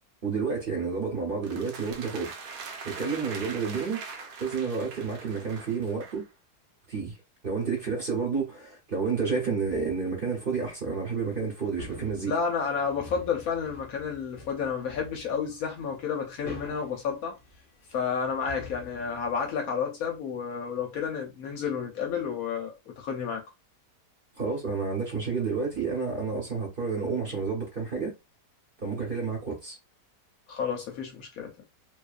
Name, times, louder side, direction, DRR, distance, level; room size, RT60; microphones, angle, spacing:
voice 1, 0.2-2.3 2.8-6.3 6.9-7.2 7.4-12.4 24.4-28.1 28.8-29.8, right 5 dB, 40° right, 0.9 m, -30 dB
sound 1, 1.4-6.3, right 4 dB, 80° right, 1.1 m, -42 dB
sound 2, 11.0-19.5, left 3 dB, 45° left, 0.8 m, -47 dB
voice 2, 12.3-17.4 17.9-23.4 30.5-31.6, left 6 dB, 70° left, 1.0 m, -31 dB
2.7 x 2.4 x 2.4 m
omnidirectional pair, 1.8 m